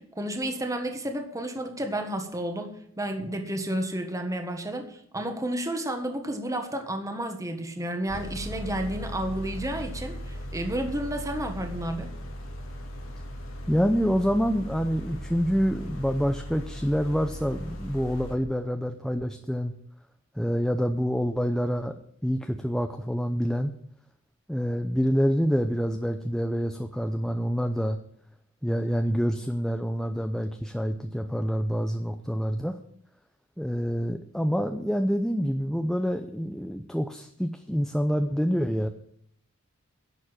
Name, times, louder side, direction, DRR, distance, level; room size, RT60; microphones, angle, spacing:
voice 1, 0.0-12.1, right 1 dB, 15° right, 5 dB, 1.5 m, -31 dB
sound 1, 8.1-18.3, equal, 85° left, 3.2 m, -38 dB
voice 2, 13.7-19.7 20.3-21.9 22.2-23.7 24.5-28.0 28.6-32.8 33.6-38.9, equal, 5° left, 6 dB, 0.7 m, -27 dB
11.0 x 7.2 x 9.1 m, 0.66 s
head